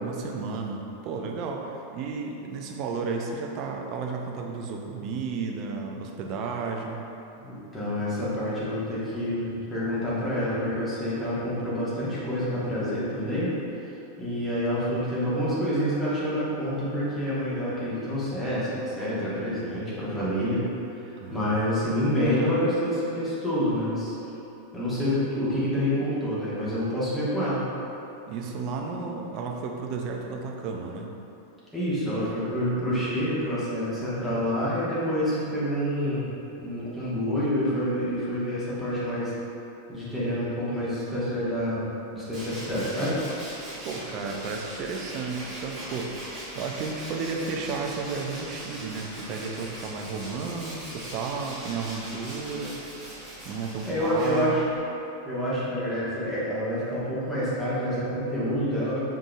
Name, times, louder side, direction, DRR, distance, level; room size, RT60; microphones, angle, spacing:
voice 1, 0.0-7.0 21.2-21.6 28.3-31.1 43.8-46.1 46.5-52.8 53.5-54.6, right 4 dB, 40° right, 1 dB, 0.5 m, -33 dB
voice 2, 7.4-13.5 14.2-20.6 20.9-24.1 24.7-27.6 31.7-36.3 36.6-39.3 39.9-43.1 53.9-54.6 55.2-59.0, equal, 10° left, -10 dB, 1.4 m, -27 dB
Tools, 42.3-54.8, right 1 dB, 15° right, 1.5 m, -40 dB
5.4 x 3.7 x 2.4 m, 2.9 s
figure-of-eight pair, 90°, 0 cm